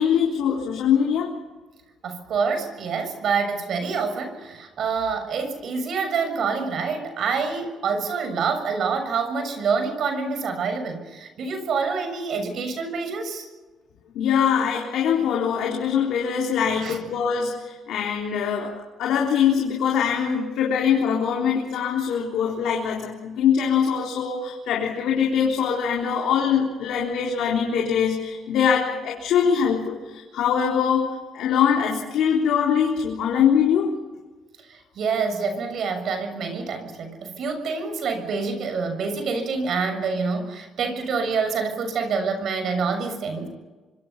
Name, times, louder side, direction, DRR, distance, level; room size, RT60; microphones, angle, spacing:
voice 1, 0.0-1.3 14.1-33.9, left 7 dB, 85° left, -1 dB, 4.0 m, -23 dB
voice 2, 2.0-13.4 16.7-17.0 34.7-43.5, right 5 dB, 65° right, 7 dB, 6.7 m, -27 dB
26.5 x 25.0 x 5.7 m, 1.2 s
cardioid pair, 90°, 0 cm